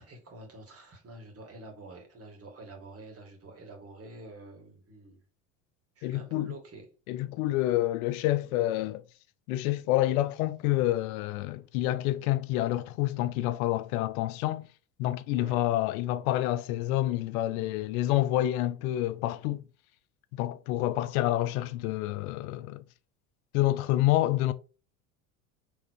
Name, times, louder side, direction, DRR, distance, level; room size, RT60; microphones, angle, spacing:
voice 1, 0.0-5.2 6.0-6.9 15.3-15.6, right 2 dB, 35° right, 2.2 m, -47 dB
voice 2, 6.0-6.5 7.1-9.0 9.5-14.7 15.0-19.6 20.3-22.8 23.5-24.5, left 15 dB, 75° left, 0.6 m, -28 dB
4.7 x 3.5 x 3.0 m
supercardioid pair, 90°, 43 cm